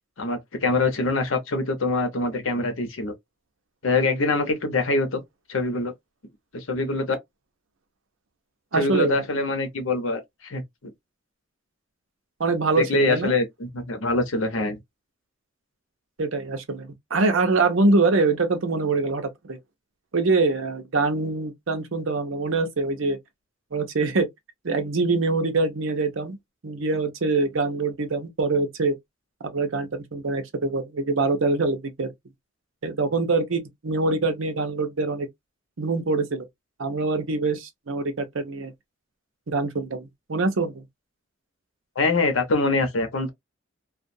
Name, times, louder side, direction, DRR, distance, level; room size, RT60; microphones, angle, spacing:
voice 1, 0.2-3.1 3.8-5.2 5.5-5.9 6.5-7.2 8.7-10.9 12.8-14.8 42.0-43.3, left 2 dB, 85° left, 0.9 m, -24 dB
voice 2, 8.7-9.2 12.4-13.3 16.2-19.6 20.1-23.2 23.7-24.3 24.6-26.4 26.6-28.9 29.4-32.1 32.8-35.3 35.8-36.4 36.8-38.7 39.5-40.8, right 3 dB, 85° right, 0.7 m, -24 dB
2.4 x 2.3 x 2.6 m
head